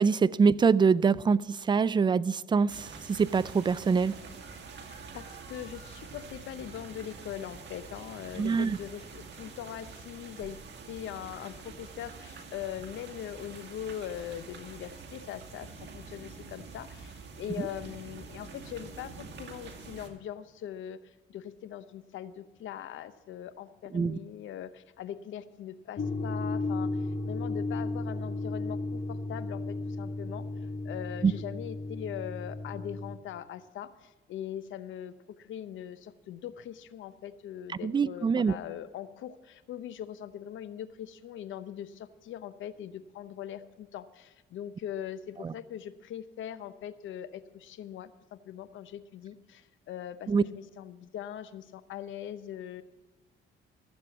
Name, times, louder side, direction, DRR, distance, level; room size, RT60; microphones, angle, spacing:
voice 1, 0.0-4.2 8.4-8.8 17.6-17.7 23.9-24.2 31.2-31.3 37.7-38.6 45.4-45.5 50.3-50.4, right 5 dB, 25° right, 18 dB, 0.4 m, -25 dB
sound 1, 2.7-20.1, right 4 dB, 60° right, 2.0 m, -46 dB
voice 2, 4.9-10.6 10.9-30.5 30.8-52.8, left 10 dB, 75° left, 14 dB, 0.8 m, -41 dB
sound 2, 26.0-33.2, left 2 dB, 45° left, 1.1 m, -34 dB
15.0 x 7.6 x 7.1 m, 1.2 s
cardioid pair, 90°, 20 cm